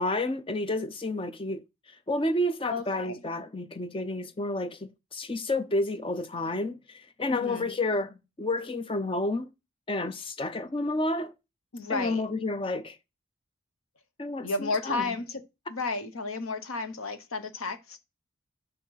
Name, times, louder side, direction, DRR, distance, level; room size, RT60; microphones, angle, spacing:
voice 1, 0.0-1.6 2.1-9.5 9.9-11.3 11.9-13.0 14.2-15.0, left 2 dB, 25° left, 0.6 m, -30 dB
voice 2, 2.7-3.2 7.3-7.7 11.7-12.2 14.4-15.4 15.7-18.0, left 3 dB, 85° left, 1.1 m, -32 dB
6.1 x 5.5 x 5.7 m
head